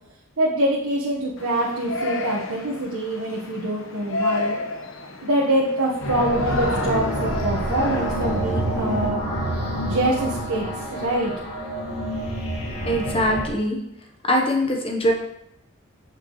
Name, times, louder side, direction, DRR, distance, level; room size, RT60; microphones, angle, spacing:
voice 1, 0.4-4.6 5.2-9.2 9.8-11.3, right 1 dB, 85° right, -4 dB, 1.2 m, -24 dB
Yell, 1.4-9.1, left 2 dB, 65° left, 0.9 m, -31 dB
sound 1, 6.0-13.5, right 1 dB, 90° left, 1.9 m, -27 dB
voice 2, 12.6-13.8 14.2-15.1, equal, 25° left, 2 dB, 1.0 m, -22 dB
7.8 x 5.9 x 3.1 m, 0.79 s
head